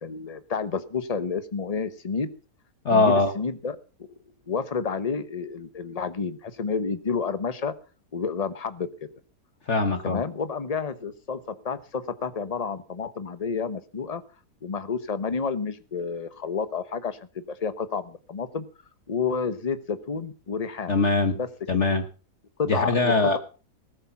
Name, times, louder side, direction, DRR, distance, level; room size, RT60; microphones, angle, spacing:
voice 1, 0.0-2.3 2.9-4.1 4.5-7.7 8.1-9.1 10.0-14.2 14.6-18.6 19.1-20.9 21.3-21.5 22.6-23.4, left 5 dB, 25° left, 12 dB, 1.0 m, -30 dB
voice 2, 2.8-3.3 9.7-10.2 20.9-21.3 21.7-22.0 22.7-23.4, left 3 dB, 45° left, 8 dB, 1.6 m, -21 dB
19.0 x 8.5 x 5.9 m, 0.37 s
omnidirectional pair, 1.7 m